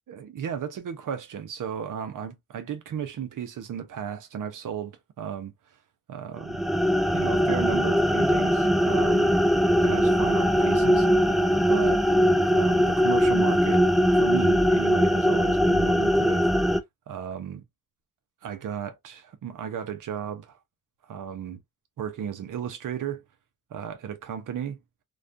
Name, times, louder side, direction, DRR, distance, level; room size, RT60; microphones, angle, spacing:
voice 1, 0.1-5.5 6.1-6.7 7.1-9.4 9.8-11.4 11.7-12.0 12.5-13.9 14.1-16.5 17.1-17.6 18.4-20.6 21.1-21.6 22.0-23.2 23.7-24.8, right 8 dB, 70° right, 0.7 m, -34 dB
sound 1, 6.4-16.8, equal, ahead, 0.3 m, -21 dB
2.4 x 2.2 x 2.5 m
supercardioid pair, 45°, 32 cm